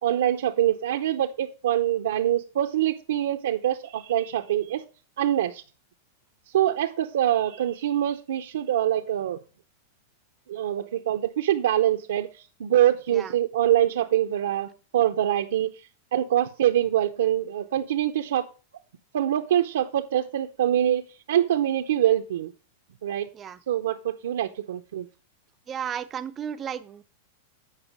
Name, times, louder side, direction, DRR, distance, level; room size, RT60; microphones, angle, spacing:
voice 1, 0.0-4.8 5.2-5.6 6.5-9.4 10.5-18.5 19.1-22.5 23.0-23.3 23.7-25.1, right 11 dB, 85° right, 4 dB, 0.6 m, -24 dB
voice 2, 25.7-27.0, right 8 dB, 25° right, 15 dB, 0.6 m, -34 dB
9.0 x 5.4 x 5.3 m, 0.35 s
supercardioid pair, 135°, 0 cm